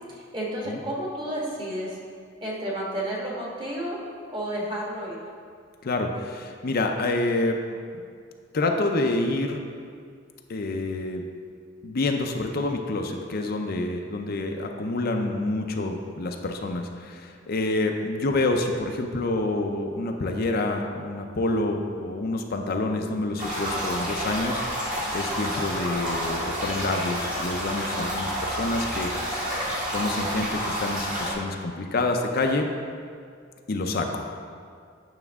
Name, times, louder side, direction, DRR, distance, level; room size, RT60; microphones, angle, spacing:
voice 1, 0.1-2.0 2.4-4.0 4.3-5.2, right 1 dB, 25° right, -4 dB, 1.5 m, -31 dB
voice 2, 5.8-7.6 8.5-9.6 10.5-11.3 11.8-24.8 25.1-32.7 33.7-34.4, left 2 dB, 50° left, 3 dB, 0.5 m, -27 dB
sound 1, 23.4-31.3, equal, 45° right, 2.1 m, -29 dB
9.2 x 5.9 x 3.5 m, 2.2 s
head